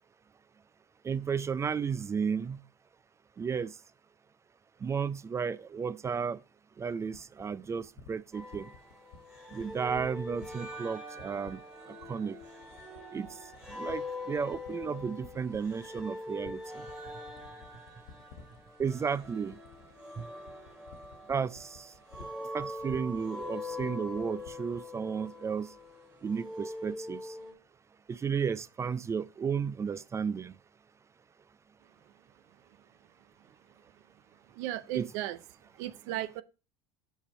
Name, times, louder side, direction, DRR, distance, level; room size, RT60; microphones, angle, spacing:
voice 1, 1.0-2.6 3.4-3.7 4.8-6.4 6.8-8.7 9.5-11.6 12.1-12.4 13.1-13.3 13.7-16.6 18.8-19.6 20.2-20.3 21.3-21.9 22.5-25.7 26.2-27.2 28.1-30.5 34.9-35.1, right 6 dB, 20° right, 0.3 m, -33 dB
sound 1, 7.1-24.9, left 6 dB, 80° left, 1.6 m, -52 dB
sound 2, 8.3-27.5, left 2 dB, 5° right, 2.4 m, -43 dB
voice 2, 34.5-35.4 35.7-36.4, right 14 dB, 70° right, 0.5 m, -35 dB
6.8 x 5.5 x 4.2 m
supercardioid pair, 110°, 14 cm